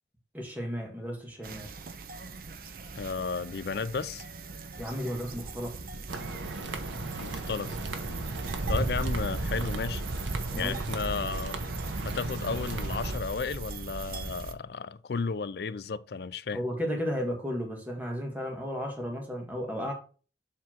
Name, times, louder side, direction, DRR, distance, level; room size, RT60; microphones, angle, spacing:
voice 1, 0.3-1.7 4.8-5.8 10.5-10.8 16.5-19.9, equal, 10° right, 1.8 m, -34 dB
sound 1, 1.4-14.5, right 3 dB, 50° right, 0.7 m, -37 dB
voice 2, 3.0-4.2 7.2-7.8 8.7-10.0 10.6-11.6 12.0-16.6, left 5 dB, 55° left, 0.4 m, -33 dB
sound 2, 6.1-13.2, right 2 dB, 80° right, 1.0 m, -37 dB
7.5 x 3.6 x 5.9 m
head